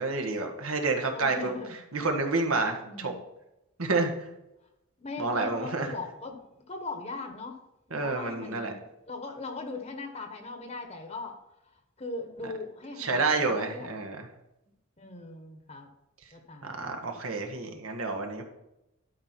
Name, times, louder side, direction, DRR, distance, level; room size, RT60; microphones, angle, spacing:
voice 1, 0.0-1.5 1.9-3.1 3.8-4.1 5.2-5.9 7.9-8.7 13.0-14.3 16.6-18.4, right 3 dB, 80° right, 3 dB, 1.5 m, -29 dB
voice 2, 1.1-1.8 2.8-3.2 4.0-4.3 5.0-7.6 7.9-8.8 9.1-11.4 12.0-13.9 15.0-15.9 16.3-17.0, left 3 dB, 30° left, 5 dB, 1.0 m, -39 dB
12.0 x 5.2 x 4.5 m, 0.89 s
head